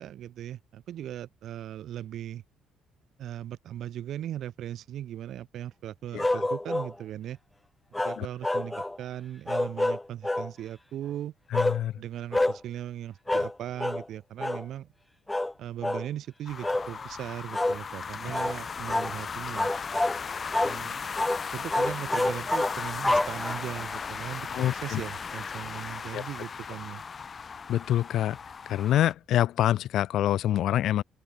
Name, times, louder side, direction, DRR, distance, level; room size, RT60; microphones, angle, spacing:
voice 1, 0.0-2.4 3.2-7.4 8.0-11.3 12.0-14.9 15.6-19.7 20.6-21.1 21.5-27.0, right 11 dB, 65° right, 2.3 m, -38 dB
sound 1, 6.2-6.9 7.9-9.0 9.5-10.5 11.5-11.8 12.3-12.6 13.3-13.5 13.8-14.0 14.4-14.6 15.3-15.5 15.8-16.1 16.6-16.9 17.5-17.8 18.3-18.6 18.9-19.1 19.6-20.2 20.5-20.8 21.2-21.4 21.7-23.8, left 2 dB, 10° left, 0.7 m, -27 dB
voice 2, 11.5-11.9 24.5-25.0 26.1-26.2 27.7-28.4 28.7-31.0, left 12 dB, 65° left, 1.2 m, -25 dB
sound 2, 16.5-29.1, left 6 dB, 35° left, 2.1 m, -37 dB
open air
supercardioid pair, 85°, 0 cm